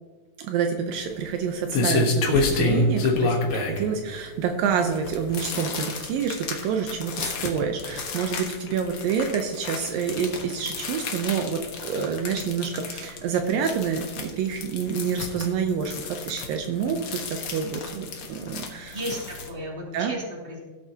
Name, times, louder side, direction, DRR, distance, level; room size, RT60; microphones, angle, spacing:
voice 1, 0.4-11.6 11.8-19.0 19.9-20.1, right 6 dB, 75° right, 4 dB, 2.4 m, -28 dB
sound 1, 0.9-19.5, left 3 dB, 60° left, 1.4 m, -30 dB
voice 2, 18.8-20.6, equal, 15° right, -3 dB, 2.3 m, -34 dB
16.5 x 8.5 x 2.8 m, 1.4 s
omnidirectional pair, 4.3 m